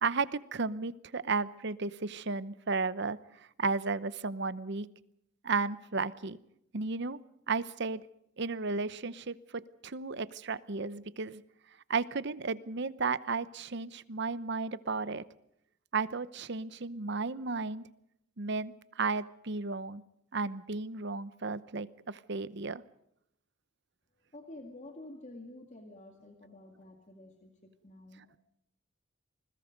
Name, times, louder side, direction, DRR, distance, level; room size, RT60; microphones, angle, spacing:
voice 1, 0.0-4.9 5.4-6.4 6.7-7.2 7.5-8.0 8.4-11.4 11.9-15.2 15.9-17.9 18.4-20.0 20.3-22.8, right 4 dB, 60° right, 16 dB, 0.9 m, -34 dB
voice 2, 24.1-28.4, left 1 dB, 35° left, 4 dB, 2.2 m, -50 dB
28.0 x 21.5 x 5.2 m, 0.76 s
head